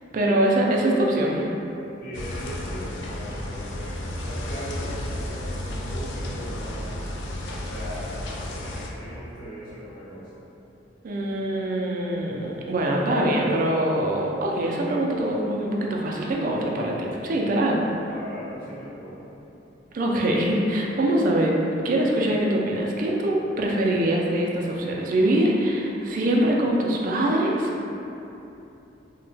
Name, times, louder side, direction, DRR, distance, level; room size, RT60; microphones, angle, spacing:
voice 1, 0.1-1.5 11.0-17.9 19.9-21.6 21.8-27.7, right 1 dB, 50° right, -2 dB, 0.3 m, -23 dB
voice 2, 2.0-6.9 7.6-10.4 18.1-19.3, equal, 50° left, -10 dB, 0.8 m, -39 dB
sound 1, 2.1-8.9, left 1 dB, 75° left, 0.3 m, -32 dB
2.8 x 2.2 x 2.7 m, 2.9 s
head